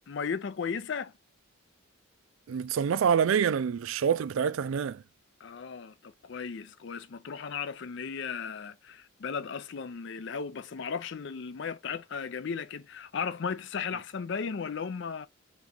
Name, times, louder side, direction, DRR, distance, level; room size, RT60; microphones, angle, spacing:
voice 1, 0.1-1.1 5.4-15.3, left 6 dB, 55° left, 0.4 m, -36 dB
voice 2, 2.5-5.0, right 7 dB, 70° right, 0.3 m, -26 dB
3.4 x 3.1 x 3.8 m
head